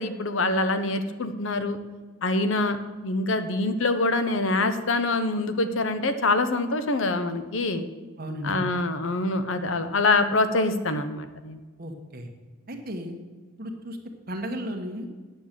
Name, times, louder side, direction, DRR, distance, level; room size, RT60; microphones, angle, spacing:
voice 1, 0.0-1.8 2.2-2.8 3.0-7.9 8.4-11.6, left 2 dB, 70° left, 10 dB, 0.8 m, -25 dB
voice 2, 8.2-8.7 11.8-12.3 12.7-13.2 13.6-14.0 14.3-15.1, equal, 45° right, 3 dB, 1.4 m, -34 dB
9.8 x 6.7 x 7.5 m, 1.3 s
head